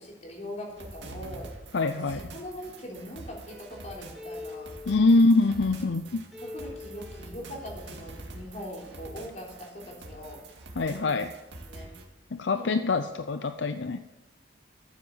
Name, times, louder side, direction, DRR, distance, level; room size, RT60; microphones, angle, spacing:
voice 1, 0.0-1.5 2.1-4.8 5.7-5.9 6.4-10.4 10.9-11.2 11.7-11.9 12.6-12.7, equal, 40° left, -2 dB, 3.7 m, -41 dB
sound 1, 0.8-12.0, right 2 dB, 75° right, 2.2 m, -45 dB
voice 2, 1.7-2.3 4.9-6.2 10.8-11.3 12.3-14.0, left 3 dB, 75° left, 9 dB, 0.6 m, -24 dB
sound 2, 3.5-6.1 6.3-8.5 8.8-9.1, left 3 dB, ahead, 2.6 m, -45 dB
13.5 x 8.0 x 7.2 m, 0.98 s
head